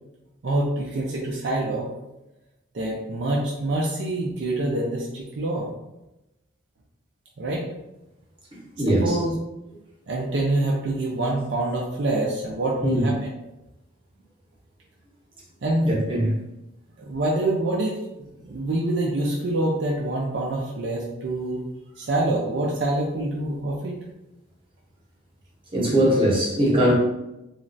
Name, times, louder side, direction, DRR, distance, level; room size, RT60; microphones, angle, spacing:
voice 1, 0.4-1.9 2.7-5.7 7.4-7.7 8.9-9.3 10.1-13.3 15.6-15.9 17.0-18.0 18.4-21.6 22.0-24.0, right 2 dB, 65° right, -2 dB, 0.4 m, -26 dB
voice 2, 8.8-9.1 12.8-13.0 15.8-16.3 25.7-26.9, right 1 dB, 25° right, -5 dB, 0.8 m, -20 dB
3.1 x 2.4 x 2.5 m, 0.93 s
head